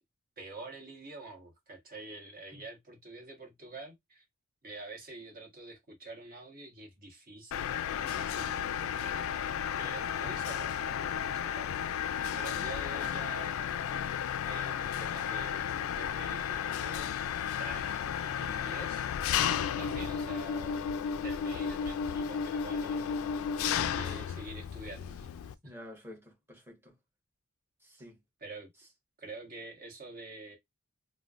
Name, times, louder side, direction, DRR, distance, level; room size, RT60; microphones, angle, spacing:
voice 1, 0.4-4.2 4.6-9.1 9.8-12.1 12.3-13.8 14.4-17.3 17.6-19.3 19.8-23.2 23.8-25.7 28.4-28.7 29.2-30.6, right 2 dB, 40° right, 1.3 m, -47 dB
Mechanisms, 7.5-25.5, left 8 dB, 65° left, 0.3 m, -33 dB
voice 2, 12.2-12.7 25.6-26.9 27.8-28.2, left 1 dB, 10° right, 1.3 m, -50 dB
3.2 x 2.2 x 2.4 m
head